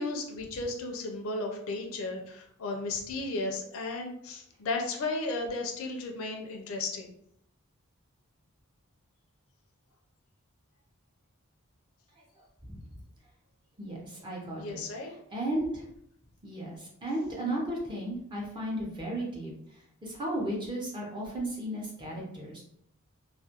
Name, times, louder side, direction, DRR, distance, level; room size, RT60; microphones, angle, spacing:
voice 1, 0.0-7.1 14.5-15.1, left 2 dB, 65° left, 2 dB, 0.4 m, -34 dB
voice 2, 13.8-15.9 16.4-22.6, right 1 dB, 20° right, -3 dB, 0.6 m, -35 dB
2.3 x 2.1 x 2.7 m, 0.72 s
head